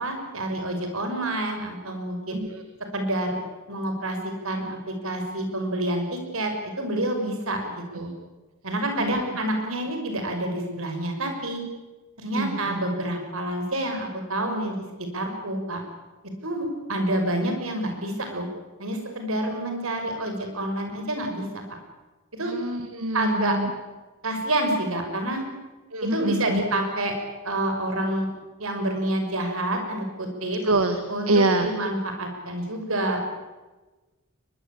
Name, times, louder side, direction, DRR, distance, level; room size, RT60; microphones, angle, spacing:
voice 1, 0.0-2.4 2.9-3.4 3.7-8.1 8.6-11.6 12.2-14.8 15.1-15.8 16.4-18.5 18.8-21.8 22.3-22.5 23.1-23.6 24.2-25.4 26.0-27.1 27.4-28.3 28.6-30.6 31.1-33.3, right 1 dB, 70° right, 5 dB, 6.1 m, -28 dB
voice 2, 2.3-2.6 9.0-9.2 12.4-12.8 22.4-23.7 25.9-26.6 30.6-31.0 31.3-31.7, right 2 dB, 85° right, 7 dB, 1.9 m, -25 dB
22.5 x 22.0 x 8.7 m, 1.2 s
head